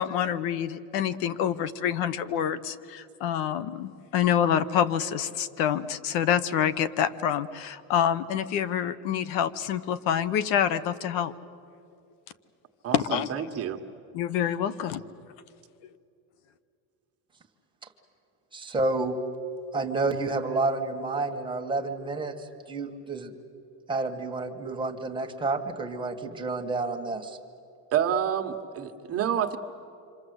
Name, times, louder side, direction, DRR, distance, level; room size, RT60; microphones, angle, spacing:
voice 1, 0.0-11.3 12.9-13.5 14.1-15.0, left 9 dB, 75° left, 15 dB, 1.1 m, -27 dB
voice 2, 12.8-13.8 27.9-29.6, right 9 dB, 35° right, 5 dB, 1.4 m, -28 dB
voice 3, 18.5-19.2 19.7-22.4 22.7-23.3 23.9-27.4, right 3 dB, 10° right, 2 dB, 1.9 m, -29 dB
28.0 x 26.0 x 8.1 m, 2.5 s
cardioid pair, 155°, 39 cm